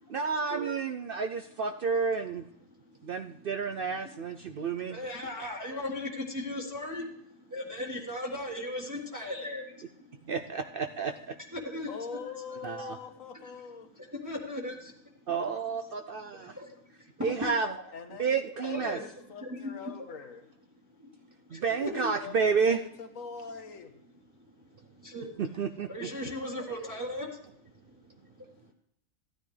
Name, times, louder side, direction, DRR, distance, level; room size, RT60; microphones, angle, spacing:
voice 1, 0.1-2.4 3.0-5.0 10.2-11.3 12.6-13.0 15.3-16.6 17.2-17.7 18.2-19.0 21.5-22.8 25.4-26.1, right 5 dB, 60° right, 7 dB, 0.6 m, -30 dB
voice 2, 4.9-10.2 11.5-11.9 14.1-15.3 16.3-17.7 18.6-19.1 19.4-19.6 20.9-21.1 21.5-22.1 24.4-25.4 25.9-28.7, left 1 dB, 15° right, -3 dB, 1.6 m, -38 dB
voice 3, 11.9-13.9 17.9-20.5 21.7-23.9, left 5 dB, 70° left, 7 dB, 1.6 m, -43 dB
15.0 x 9.8 x 3.3 m, 0.76 s
omnidirectional pair, 1.4 m